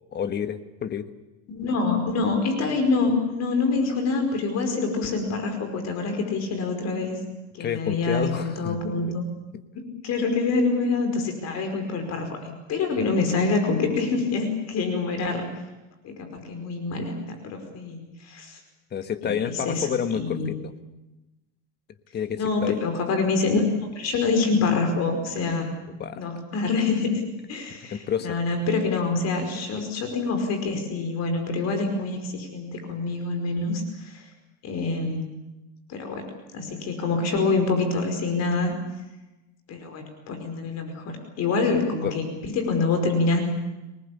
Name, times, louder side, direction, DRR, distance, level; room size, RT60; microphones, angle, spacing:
voice 1, 0.1-1.1 7.6-8.9 18.9-20.7 22.1-22.8 25.9-26.2 27.7-28.4 42.0-42.1, left 8 dB, 25° left, 11 dB, 1.5 m, -29 dB
voice 2, 1.5-7.2 7.6-9.3 9.7-15.4 16.0-18.6 19.2-19.9 20.1-20.5 22.3-23.6 23.9-25.7 26.2-34.2 34.6-35.2 35.9-36.2 36.5-38.7 39.7-43.4, left 3 dB, 40° left, 6 dB, 5.0 m, -26 dB
26.0 x 19.5 x 8.5 m, 1.0 s
supercardioid pair, 145°, 39 cm